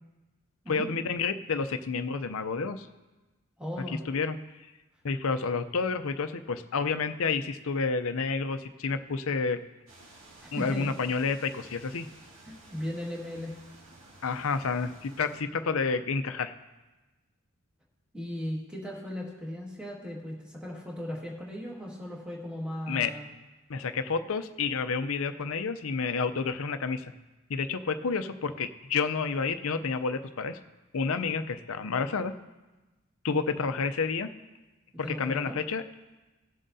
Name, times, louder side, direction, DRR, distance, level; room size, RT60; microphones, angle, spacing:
voice 1, 0.7-2.9 4.1-4.4 5.0-9.6 10.5-12.1 14.2-16.5 22.9-23.1 23.7-27.0 27.5-30.6 30.9-32.3 33.2-34.3 35.2-35.8, left 4 dB, 70° left, 10 dB, 0.6 m, -29 dB
voice 2, 3.6-4.0 10.4-10.9 12.5-13.6 18.1-23.3 35.0-35.6, equal, 5° right, -3 dB, 1.8 m, -37 dB
sound 1, 9.9-15.4, right 2 dB, 65° right, 2.3 m, -53 dB
18.5 x 7.4 x 2.7 m, 1.1 s
head